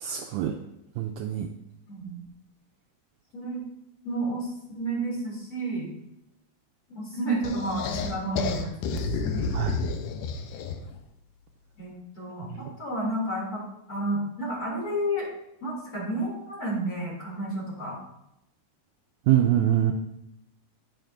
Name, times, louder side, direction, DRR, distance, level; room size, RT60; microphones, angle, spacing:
voice 1, 0.0-0.6 1.0-1.5 9.5-9.8 12.5-12.7 19.3-19.9, right 11 dB, 80° right, 4 dB, 1.8 m, -24 dB
voice 2, 1.9-2.2 3.3-3.6 4.0-4.5 4.7-5.9 6.9-9.5 11.8-13.6 13.9-15.3 15.6-18.0, right 1 dB, 30° left, -4 dB, 2.8 m, -31 dB
sound 1, 7.4-11.0, left 4 dB, 80° left, 2.2 m, -30 dB
10.0 x 9.2 x 2.6 m, 0.84 s
omnidirectional pair, 3.8 m